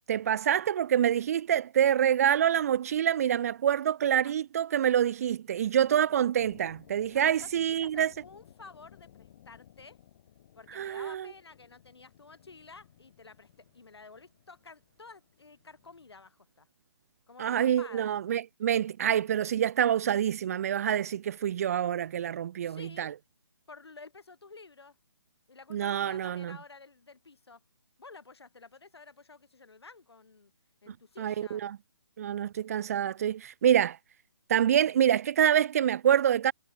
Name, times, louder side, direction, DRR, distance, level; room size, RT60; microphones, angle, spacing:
voice 1, 0.1-8.1 10.7-11.3 17.4-23.1 25.7-26.6 31.2-31.8 32.2-34.0 34.5-36.5, right 9 dB, 35° right, 0.5 m, -26 dB
sound 1, 6.4-16.3, left 11 dB, 40° left, 3.1 m, -59 dB
voice 2, 7.1-10.0 10.5-16.7 17.3-18.1 22.6-23.1 23.7-25.0 25.5-27.6 28.0-30.5 30.8-31.6, left 4 dB, 70° left, 4.8 m, -51 dB
figure-of-eight pair, 140°, 14 cm